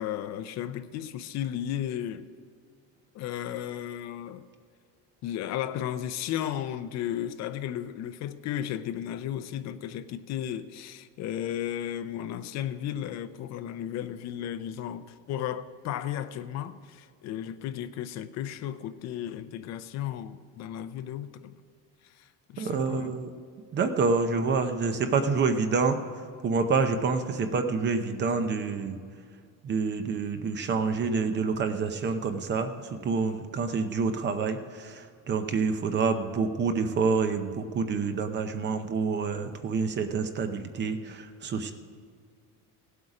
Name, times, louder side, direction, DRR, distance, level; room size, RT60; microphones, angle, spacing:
voice 1, 0.0-2.3 3.1-4.4 5.2-21.5 22.0-23.2, left 11 dB, 45° left, 0.6 m, -34 dB
voice 2, 22.6-23.3 23.7-26.0 26.4-29.0 29.6-41.7, right 4 dB, 30° right, 0.7 m, -27 dB
16.5 x 8.1 x 4.9 m
cardioid pair, 180°, 37 cm